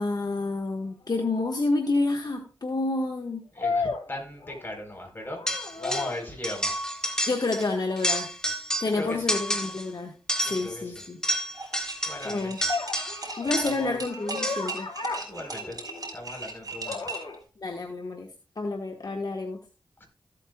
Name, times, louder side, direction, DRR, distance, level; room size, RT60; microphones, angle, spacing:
voice 1, 0.0-3.4 7.3-8.3 8.8-10.1 10.4-11.2 12.2-12.6 13.4-14.9 17.6-18.3 18.6-19.6, left 3 dB, 55° left, 2 dB, 1.6 m, -29 dB
sound 1, 1.2-1.3 3.6-4.9 5.2-6.3 9.0-9.2 12.7-16.2 16.8-17.4, left 4 dB, 70° left, 2.1 m, -34 dB
voice 2, 3.5-5.4 5.8-6.7 8.9-9.3 10.4-11.0 12.1-12.5 13.6-14.0 15.3-15.8 16.1-17.0 20.0-20.1, left 1 dB, 25° left, 2 dB, 4.4 m, -38 dB
sound 2, 5.5-6.2 6.4-7.7 8.0-9.0 9.3-9.9 10.3-13.9 14.4-14.8, equal, 10° left, 1.8 m, -30 dB
sound 3, 11.5-17.3, right 3 dB, 50° right, 4.1 m, -38 dB
15.0 x 8.5 x 2.4 m, 0.34 s
cardioid pair, 60°, 8 cm